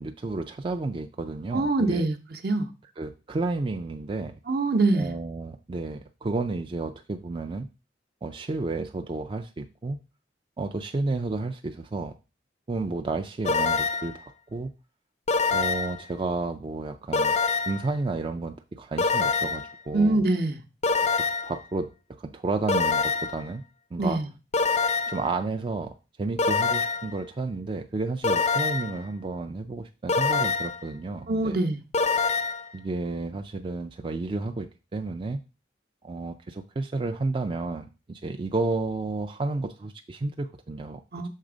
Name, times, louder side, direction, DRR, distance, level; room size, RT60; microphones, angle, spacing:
voice 1, 0.0-2.0 3.0-4.4 4.9-7.7 8.2-10.0 10.6-12.1 12.7-14.7 15.5-17.4 17.7-20.3 21.1-23.6 23.9-24.2 25.1-31.6 32.7-35.4 36.0-41.0, right 3 dB, 30° right, 0.4 m, -31 dB
voice 2, 1.5-2.1 2.4-2.7 4.5-5.1 19.9-20.6 24.0-24.3 31.3-31.8 41.1-41.3, right 2 dB, 60° right, 0.8 m, -24 dB
sound 1, 13.4-14.2 15.3-16.0 17.1-17.9 19.0-19.7 20.8-21.6 22.7-23.4 24.5-25.3 26.4-27.1 28.2-29.0 30.1-30.8 31.9-32.7, left 4 dB, 40° left, 0.4 m, -25 dB
6.5 x 3.4 x 5.0 m
head